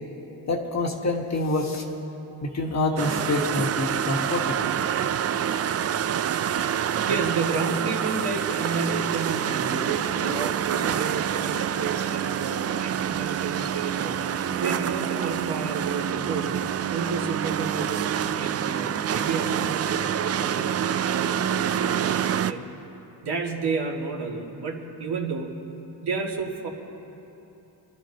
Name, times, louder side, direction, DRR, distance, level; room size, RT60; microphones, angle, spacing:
voice 1, 0.5-1.8 2.4-4.6, left 2 dB, 40° left, 2 dB, 1.6 m, -26 dB
sound 1, 3.0-22.5, right 9 dB, 40° right, 0.4 m, -27 dB
voice 2, 6.8-14.1 14.6-16.5 16.9-22.6 23.2-25.6 26.0-26.7, right 4 dB, 65° right, -1 dB, 2.1 m, -31 dB
28.0 x 12.0 x 2.9 m, 2.9 s
cardioid pair, 100°, 42 cm